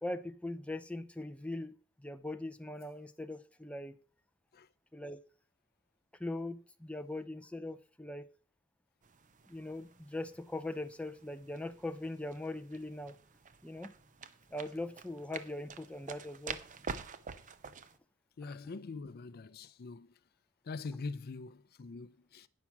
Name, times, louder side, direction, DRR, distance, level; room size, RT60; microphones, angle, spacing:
voice 1, 0.0-3.9 4.9-5.2 6.2-8.3 9.5-13.2 13.6-13.9 14.5-16.6 18.5-18.6, left 2 dB, 5° left, 0.6 m, -41 dB
sound 1, 9.0-18.0, right 5 dB, 40° right, 0.6 m, -48 dB
voice 2, 18.4-20.1 20.6-22.5, left 3 dB, 50° left, 0.5 m, -43 dB
9.8 x 5.9 x 5.9 m
head